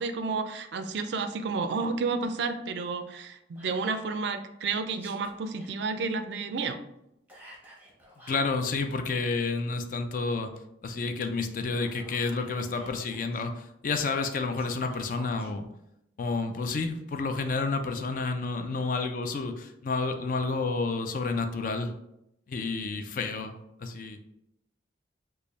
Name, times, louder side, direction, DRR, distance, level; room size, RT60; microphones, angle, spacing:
voice 1, 0.0-6.8, right 4 dB, 65° right, 9 dB, 0.3 m, -31 dB
Whispering, 3.6-4.3 4.9-5.7 7.3-8.5 11.6-13.4 14.3-15.5, equal, 10° right, 0.8 m, -52 dB
voice 2, 8.3-10.5 10.8-15.7 16.2-21.9 22.5-23.5 23.8-24.2, left 3 dB, 45° left, 6 dB, 0.3 m, -30 dB
3.3 x 2.2 x 3.9 m, 0.83 s
head